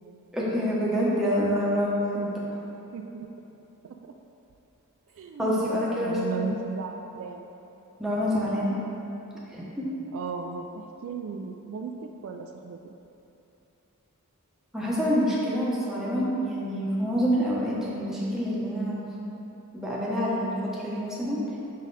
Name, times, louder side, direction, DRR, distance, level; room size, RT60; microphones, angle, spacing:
voice 1, 0.3-2.2 5.4-6.6 8.0-8.8 9.5-9.9 14.7-19.0 19.7-21.6, equal, ahead, -7 dB, 1.0 m, -27 dB
voice 2, 2.9-3.3 3.8-3.9 5.1-5.6 6.0-7.5 10.1-12.9, right 5 dB, 60° right, 3 dB, 0.3 m, -35 dB
6.2 x 4.1 x 4.0 m, 3.0 s
head